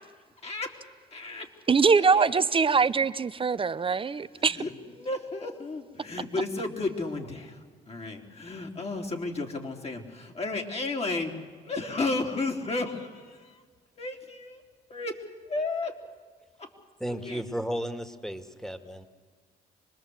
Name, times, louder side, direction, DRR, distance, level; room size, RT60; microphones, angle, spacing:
voice 1, 0.4-0.8 1.1-1.5 2.0-2.4 4.3-11.3 11.6-13.6 14.0-14.6 14.9-16.0 16.6-16.7 17.1-17.4, left 3 dB, 40° left, 2 dB, 3.6 m, -33 dB
voice 2, 1.7-4.6, right 5 dB, 35° right, 15 dB, 0.8 m, -23 dB
voice 3, 17.0-19.0, equal, 5° left, 9 dB, 2.2 m, -34 dB
25.0 x 20.5 x 8.1 m, 1.5 s
supercardioid pair, 65°, 16 cm